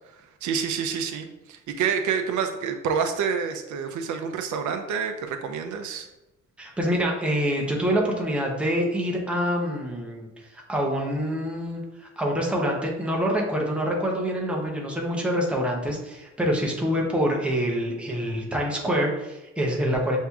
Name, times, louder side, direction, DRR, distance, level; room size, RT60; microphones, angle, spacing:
voice 1, 0.4-6.1, right 6 dB, 80° right, 6 dB, 0.5 m, -28 dB
voice 2, 6.6-10.3 10.7-20.2, equal, 5° right, -1 dB, 0.6 m, -26 dB
5.9 x 2.7 x 2.3 m, 0.96 s
cardioid pair, 155°, 29 cm